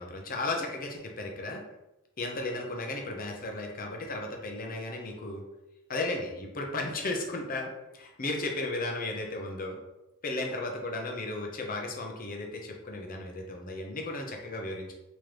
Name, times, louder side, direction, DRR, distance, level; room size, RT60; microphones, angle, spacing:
voice 1, 0.0-1.6 2.2-5.4 5.9-9.8 10.2-14.9, left 2 dB, 40° left, 1 dB, 0.7 m, -35 dB
3.8 x 3.0 x 3.3 m, 0.94 s
head